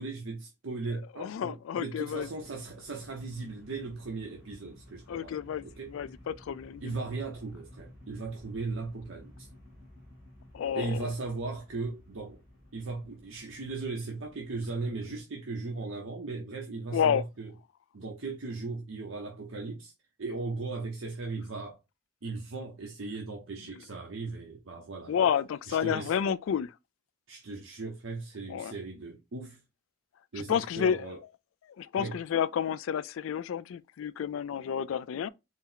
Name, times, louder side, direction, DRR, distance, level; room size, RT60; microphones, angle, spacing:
voice 1, 0.0-5.3 5.6-5.9 6.8-9.5 10.7-12.4 12.7-17.5 17.9-19.9 20.2-21.8 22.2-25.2 25.7-26.2 27.3-29.6 30.3-31.2 32.0-32.2, right 3 dB, 80° right, 0.7 m, -37 dB
voice 2, 1.2-2.3 5.1-5.6 5.9-7.0 10.5-11.1 16.9-17.2 25.1-26.7 28.5-28.7 30.4-31.1 31.8-35.3, left 8 dB, 85° left, 0.3 m, -30 dB
sound 1, 2.0-15.2, left 1 dB, 45° right, 1.9 m, -54 dB
4.2 x 2.0 x 3.8 m
head